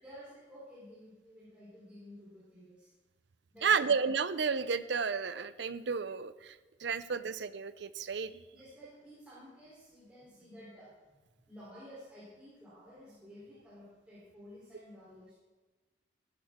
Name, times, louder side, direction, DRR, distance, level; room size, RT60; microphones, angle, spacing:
voice 1, 0.0-2.9 3.5-4.0 8.5-11.2 11.5-15.3, equal, 5° right, -10 dB, 3.6 m, -52 dB
voice 2, 3.6-6.5 6.8-8.4, right 5 dB, 70° right, 14 dB, 0.6 m, -32 dB
15.0 x 10.5 x 3.7 m, 1.3 s
head